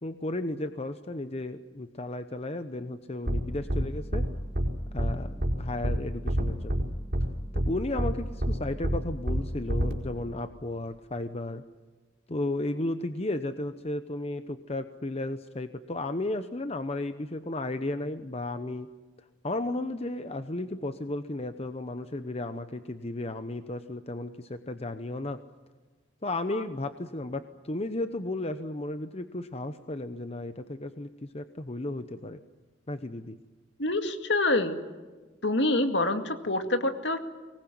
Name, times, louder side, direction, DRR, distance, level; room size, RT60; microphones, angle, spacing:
voice 1, 0.0-4.3 4.9-6.8 7.5-11.6 12.3-18.9 19.4-25.4 26.2-32.4 32.9-33.4, left 2 dB, 35° left, 10 dB, 0.9 m, -34 dB
sound 1, 3.3-3.4 3.7-3.8 4.1-4.3 4.5-4.7 5.0-5.1 5.4-5.5 5.8-6.0 6.3-6.8 7.1-7.2 7.5-7.7 8.0-8.1 8.4-8.5 8.8-9.0 9.3-9.4 9.7-9.9, equal, 55° right, 4.6 m, -26 dB
voice 2, 33.8-34.8 35.4-37.2, left 2 dB, 65° left, 7 dB, 2.2 m, -26 dB
24.0 x 19.5 x 9.4 m, 1.3 s
head